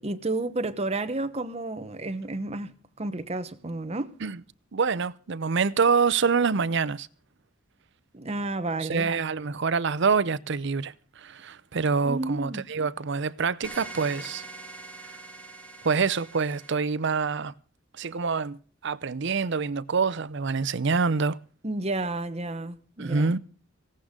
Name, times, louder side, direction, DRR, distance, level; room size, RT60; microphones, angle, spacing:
voice 1, 0.0-2.7 3.0-4.1 8.1-9.1 12.0-12.6 21.6-23.4, right 2 dB, 30° right, 1.0 m, -31 dB
voice 2, 4.7-7.1 8.8-14.4 15.8-17.5 18.0-18.6 18.8-21.4 23.0-23.4, right 5 dB, 60° right, 0.6 m, -26 dB
sound 1, 13.6-16.7, right 2 dB, 5° left, 2.1 m, -43 dB
18.0 x 16.5 x 3.7 m
head